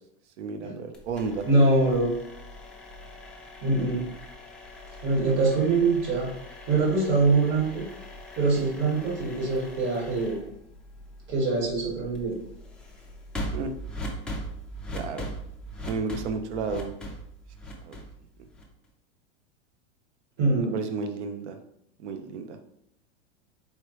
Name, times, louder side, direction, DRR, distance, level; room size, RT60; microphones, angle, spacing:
voice 1, 0.4-1.5 13.5-13.7 14.9-15.3 15.9-16.9 17.8-18.0 20.5-21.6 22.0-22.6, right 4 dB, 85° right, 7 dB, 0.8 m, -32 dB
sound 1, 0.9-18.9, equal, 5° left, 0.5 m, -40 dB
voice 2, 1.5-2.1 3.6-4.0 5.0-6.3 6.7-7.9 8.4-10.4 11.3-12.4 20.4-20.8, right 3 dB, 35° right, -3 dB, 1.7 m, -23 dB
4.3 x 3.3 x 3.0 m, 0.74 s
supercardioid pair, 135°, 34 cm